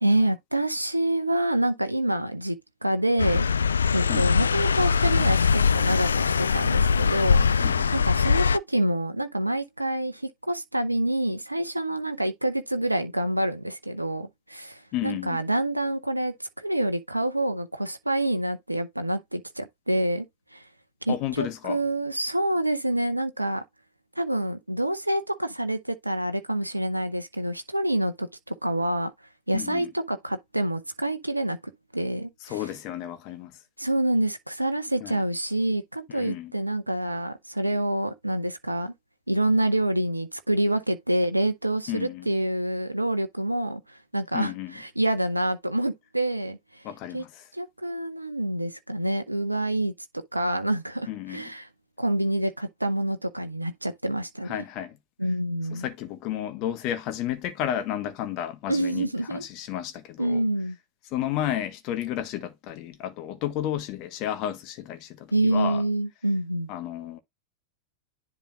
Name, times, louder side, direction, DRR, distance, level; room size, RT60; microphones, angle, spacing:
voice 1, 0.0-2.6 2.8-3.5 3.9-7.5 7.9-20.3 20.5-20.7 21.0-23.6 24.2-29.1 29.5-31.6 31.9-32.6 33.8-38.9 39.3-46.9 47.1-47.2 47.5-49.9 50.3-51.7 52.0-54.6 55.2-55.9 58.7-59.4 60.2-60.8 65.3-66.7, right 1 dB, 85° right, 0.6 m, -27 dB
sound 1, 3.2-8.6, left 6 dB, 70° left, 0.3 m, -22 dB
voice 2, 7.6-7.9 14.9-15.4 21.1-21.8 29.5-29.9 32.4-33.5 35.0-35.2 36.1-36.5 41.9-42.3 44.3-44.8 46.8-47.4 51.1-51.4 54.5-55.0 55.7-60.4 61.1-65.8 66.7-67.2, left 11 dB, 40° left, 1.5 m, -32 dB
10.5 x 3.7 x 2.6 m
figure-of-eight pair, 90°, 0 cm